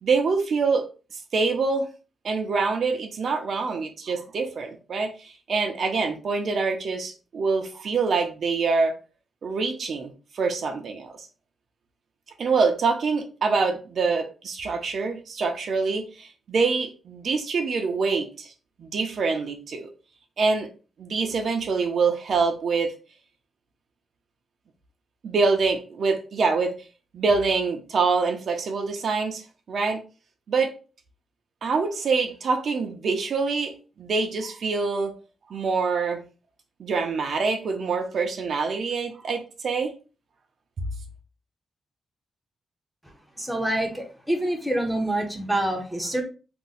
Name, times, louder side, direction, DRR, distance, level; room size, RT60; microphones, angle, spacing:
voice 1, 0.0-0.8 1.1-1.9 2.2-8.9 9.4-11.3 12.4-18.5 18.8-19.9 20.4-20.7 21.0-22.9 25.2-26.7 27.1-30.0 30.5-30.7 31.6-35.1 35.5-36.2 36.8-39.9, right 4 dB, 50° right, 0.4 m, -25 dB
voice 2, 43.4-46.2, right 1 dB, 5° right, 0.6 m, -26 dB
2.5 x 2.1 x 3.9 m
wide cardioid pair, 165°, 0 cm